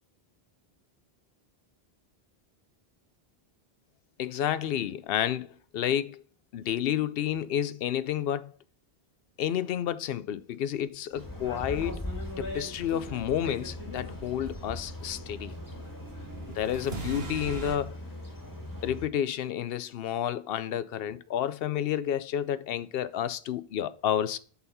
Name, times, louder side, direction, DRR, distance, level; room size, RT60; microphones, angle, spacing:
voice 1, 4.2-6.2 6.5-8.5 9.4-12.0 12.4-15.5 16.5-18.0 18.8-24.4, left 10 dB, 70° left, 0.7 m, -30 dB
sound 1, 11.1-19.1, left 1 dB, 20° left, 1.7 m, -40 dB
sound 2, 11.3-17.8, right 4 dB, 75° right, 1.6 m, -43 dB
8.0 x 4.2 x 5.5 m
omnidirectional pair, 1.0 m